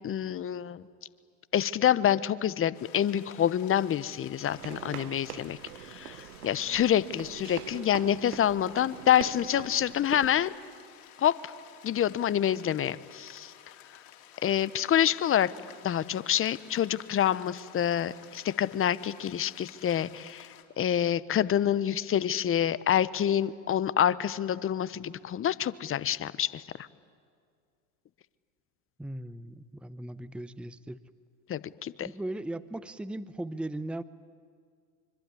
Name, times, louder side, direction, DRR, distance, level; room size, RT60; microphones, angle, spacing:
voice 1, 0.0-0.8 1.5-5.6 5.9-10.5 11.2-11.5 11.8-13.5 14.4-15.5 15.8-20.5 20.8-26.9 31.5-32.1, left 10 dB, 30° left, 17 dB, 1.0 m, -27 dB
sound 1, 2.7-20.6, left 11 dB, 65° left, 3.6 m, -53 dB
sound 2, 4.5-10.4, right 13 dB, 85° right, 1.0 m, -43 dB
voice 2, 29.0-31.0 32.0-34.0, right 1 dB, ahead, 15 dB, 0.8 m, -38 dB
25.0 x 24.5 x 9.7 m, 2.1 s
hypercardioid pair, 95°, 43 cm